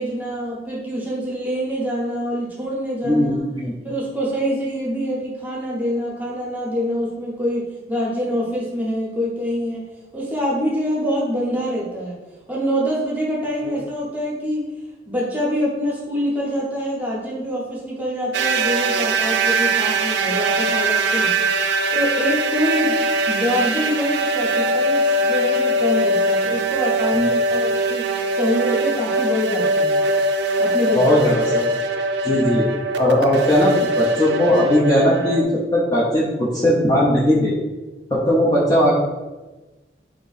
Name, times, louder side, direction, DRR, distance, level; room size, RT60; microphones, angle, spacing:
voice 1, 0.0-3.4 3.8-9.8 10.1-12.2 12.5-14.6 15.1-21.3 21.9-30.0 30.6-31.0, equal, 10° right, -4 dB, 0.9 m, -25 dB
voice 2, 3.0-3.7 27.1-27.3 30.9-31.7 32.2-32.6 33.0-37.6 38.1-38.9, left 1 dB, 20° left, -7 dB, 0.6 m, -18 dB
sound 1, 18.3-35.4, right 2 dB, 75° right, 0.4 m, -21 dB
3.6 x 2.9 x 4.1 m, 1.2 s
head